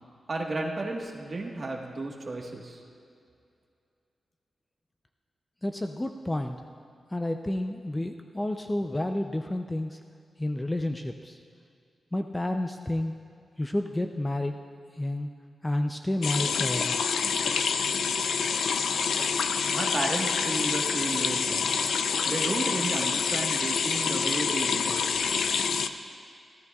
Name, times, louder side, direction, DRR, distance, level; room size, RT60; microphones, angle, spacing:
voice 1, 0.3-2.8 19.7-21.7 22.2-25.0, right 2 dB, 35° right, 0 dB, 1.4 m, -33 dB
voice 2, 5.6-6.6 7.1-10.0 10.4-11.4 12.1-13.1 13.6-14.6 15.0-15.3 15.6-17.0, left 1 dB, 15° left, 5 dB, 0.4 m, -30 dB
sound 1, 16.2-25.9, left 6 dB, 90° left, 0.5 m, -27 dB
23.0 x 15.0 x 2.4 m, 2.4 s
wide cardioid pair, 145°, 0 cm